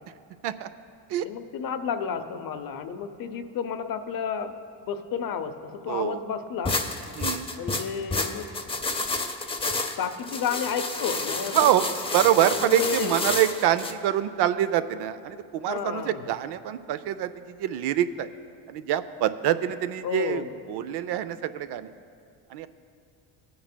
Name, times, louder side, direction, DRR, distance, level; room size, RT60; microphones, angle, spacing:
voice 1, 1.2-4.5 4.9-6.8 7.6-8.5 10.0-11.8 12.5-13.2 15.7-16.3 20.0-20.5, left 7 dB, 50° left, 9 dB, 0.7 m, -31 dB
voice 2, 5.9-6.2 7.2-7.5 11.5-11.8 12.1-18.3 18.7-21.9 22.5-22.7, right 11 dB, 60° right, 12 dB, 0.5 m, -25 dB
sound 1, 6.7-13.9, left 3 dB, 15° left, 0.5 m, -30 dB
18.5 x 9.4 x 2.2 m, 2.3 s
cardioid pair, 105°, 45 cm